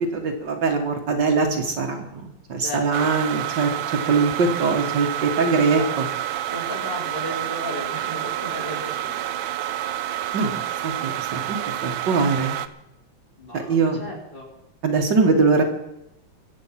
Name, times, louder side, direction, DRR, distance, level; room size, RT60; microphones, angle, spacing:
voice 1, 0.1-3.7 4.1-6.1 10.3-11.6 11.8-12.6 13.5-14.0 14.8-15.6, right 4 dB, 65° right, 3 dB, 2.2 m, -22 dB
voice 2, 2.6-3.1 5.4-5.9 6.5-9.3 10.3-10.4 13.4-14.5, equal, 25° left, -2 dB, 4.1 m, -35 dB
sound 1, 2.9-12.7, right 12 dB, 85° right, 1.5 m, -29 dB
23.0 x 8.2 x 5.8 m, 0.86 s
omnidirectional pair, 2.1 m